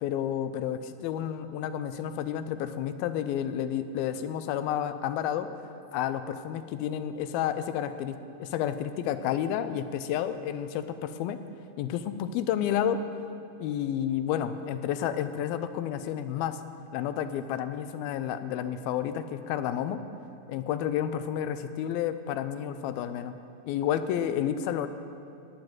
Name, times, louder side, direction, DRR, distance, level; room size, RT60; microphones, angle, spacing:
voice 1, 0.0-5.5 5.9-11.4 11.8-13.0 13.6-16.6 16.9-20.0 20.5-23.3 23.7-24.9, left 10 dB, 85° left, 11 dB, 2.5 m, -30 dB
17.5 x 7.0 x 9.1 m, 2.7 s
omnidirectional pair, 4.3 m